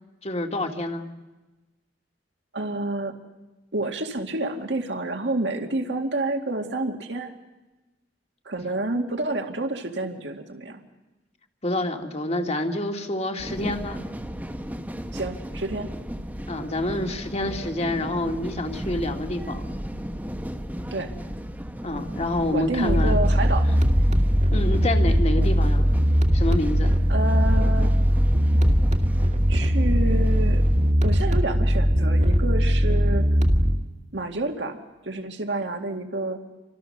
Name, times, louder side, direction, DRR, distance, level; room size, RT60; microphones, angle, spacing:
voice 1, 0.2-1.1 11.6-14.0 16.5-19.7 21.8-23.2 24.5-25.9 26.3-27.0, left 1 dB, 35° left, 4 dB, 2.2 m, -27 dB
voice 2, 2.5-3.2 3.7-7.3 8.5-10.8 15.1-15.9 20.9-21.1 22.5-23.7 27.1-27.9 29.5-30.6 31.0-33.3 34.1-34.8 35.0-36.4, right 2 dB, 70° right, 4 dB, 2.1 m, -29 dB
sound 1, 13.4-30.9, equal, 10° right, 1.2 m, -35 dB
sound 2, 22.9-33.9, equal, 40° right, 1.8 m, -20 dB
29.5 x 25.5 x 6.6 m, 1.1 s
head